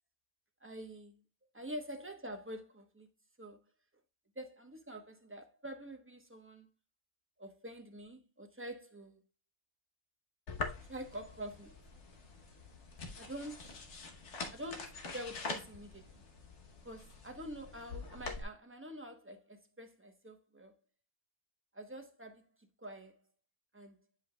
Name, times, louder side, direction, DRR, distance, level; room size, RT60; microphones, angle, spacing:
voice 1, 0.6-1.2 1.5-3.1 3.4-3.6 4.3-6.7 7.4-9.2 10.9-11.9 13.1-13.9 14.5-16.2 16.8-20.8 21.7-23.2 23.7-24.0, equal, 10° right, 0.9 m, -47 dB
sound 1, 10.5-18.4, left 3 dB, 80° left, 1.4 m, -45 dB
9.7 x 5.4 x 2.3 m
omnidirectional pair, 1.2 m